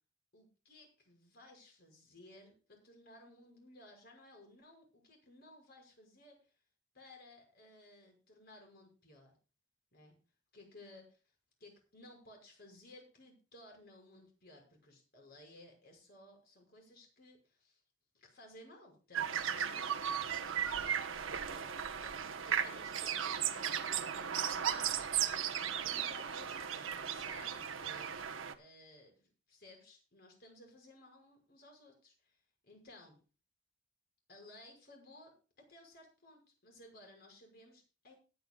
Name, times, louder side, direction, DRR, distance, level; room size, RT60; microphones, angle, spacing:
voice 1, 0.3-6.5 6.9-9.3 9.9-10.2 10.5-11.2 11.6-17.8 18.1-22.2 22.5-23.8 24.1-33.2 34.3-38.1, left 1 dB, 50° left, 2 dB, 6.0 m, -58 dB
sound 1, 19.1-28.5, right 8 dB, 85° right, 1.1 m, -36 dB
22.5 x 9.4 x 2.4 m, 0.34 s
head